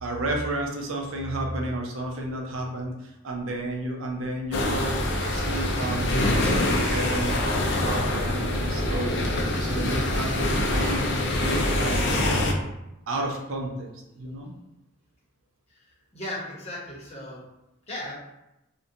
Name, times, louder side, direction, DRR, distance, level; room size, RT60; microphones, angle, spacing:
voice 1, 0.0-9.2 9.6-12.4 13.1-13.9 14.2-14.5, right 1 dB, 70° right, 1 dB, 0.5 m, -32 dB
sound 1, 4.5-12.5, left 1 dB, 55° left, 0.4 m, -25 dB
voice 2, 15.7-17.4 17.9-18.1, left 1 dB, 30° left, -5 dB, 0.7 m, -37 dB
2.5 x 2.1 x 2.6 m, 0.90 s
head